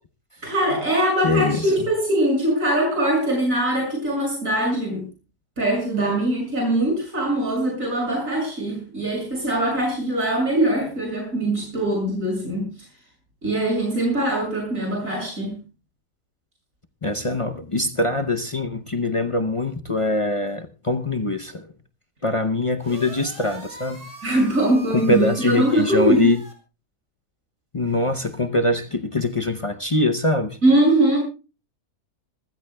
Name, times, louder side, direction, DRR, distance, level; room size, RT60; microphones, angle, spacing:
voice 1, 0.4-5.0 5.6-12.7 13.4-15.6 24.2-26.3 30.6-31.2, right 1 dB, 50° right, 7.3 m, -22 dB
voice 2, 1.2-1.7 17.0-21.7 22.2-24.0 24.9-26.4 27.7-30.6, left 2 dB, 50° left, 0.3 m, -23 dB
sound 1, 22.8-26.5, right 2 dB, 30° right, 4.8 m, -42 dB
26.5 x 15.0 x 2.2 m
omnidirectional pair, 1.8 m